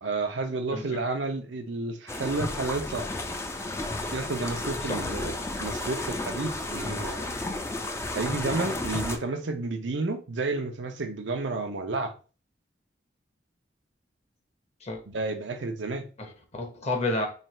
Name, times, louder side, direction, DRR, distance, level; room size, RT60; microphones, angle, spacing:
voice 1, 0.0-3.1 4.1-7.3 8.1-12.1 15.1-16.1, right 3 dB, 85° right, 0.6 m, -31 dB
voice 2, 0.7-1.0 4.8-5.0 14.8-15.0 16.2-17.3, left 2 dB, 40° left, 0.9 m, -31 dB
sound 1, 2.1-9.2, left 2 dB, 15° left, 0.4 m, -32 dB
3.2 x 2.4 x 4.2 m
head